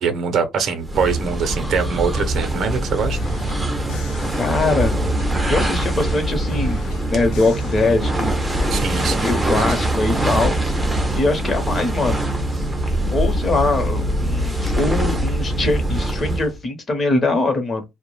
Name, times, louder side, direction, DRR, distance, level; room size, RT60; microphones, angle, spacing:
voice 1, 0.0-3.2 8.7-9.7, right 5 dB, 55° right, 0.6 m, -23 dB
sound 1, 0.8-16.6, right 1 dB, 10° right, 0.5 m, -23 dB
sound 2, 3.1-5.6 6.0-8.9, left 3 dB, 80° left, 0.6 m, -37 dB
voice 2, 4.4-5.0 5.5-6.8 7.1-8.3 9.1-10.5 11.1-12.3 13.1-17.8, left 2 dB, 30° left, 0.8 m, -22 dB
2.2 x 2.1 x 3.1 m
cardioid pair, 135°, 0 cm